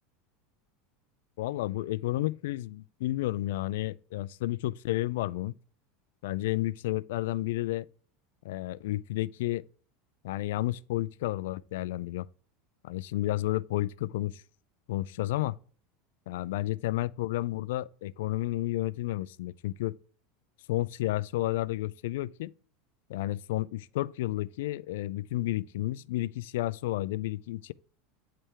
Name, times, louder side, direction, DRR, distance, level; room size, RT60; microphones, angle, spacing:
voice 1, 1.4-5.5 6.2-7.9 8.4-9.6 10.2-12.3 12.8-14.4 14.9-15.6 16.3-20.0 20.7-22.5 23.1-27.7, left 16 dB, 75° left, 0.3 m, -31 dB
8.7 x 3.4 x 4.6 m
supercardioid pair, 165°, 0 cm